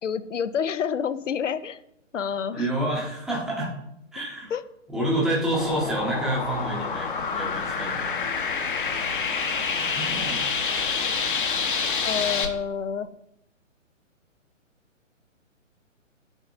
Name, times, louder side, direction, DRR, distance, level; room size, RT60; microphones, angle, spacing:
voice 1, 0.0-1.8 2.1-2.7 4.5-4.6 12.0-13.1, left 7 dB, 70° left, 14 dB, 0.6 m, -28 dB
voice 2, 2.5-3.7 4.1-4.5 4.9-8.2 9.9-10.4, right 1 dB, ahead, -5 dB, 0.8 m, -28 dB
sound 1, 5.5-12.5, left 5 dB, 40° left, 0.8 m, -27 dB
10.5 x 5.1 x 2.5 m, 0.81 s
figure-of-eight pair, 130°, 39 cm